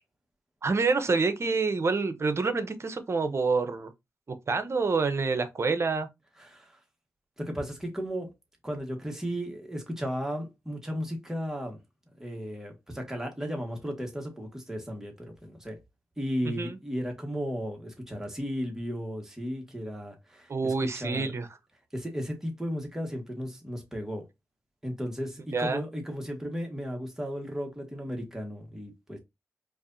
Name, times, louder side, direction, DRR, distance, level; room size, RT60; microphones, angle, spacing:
voice 1, 0.6-3.9 4.5-6.1 16.6-16.8 20.5-21.5 25.5-25.8, right 4 dB, 50° right, 0.8 m, -27 dB
voice 2, 6.4-6.8 7.4-8.3 8.6-11.8 12.2-15.8 16.2-21.3 21.9-24.2 24.8-29.2, equal, 10° right, 1.7 m, -35 dB
4.6 x 2.7 x 2.7 m
cardioid pair, 60°, 6 cm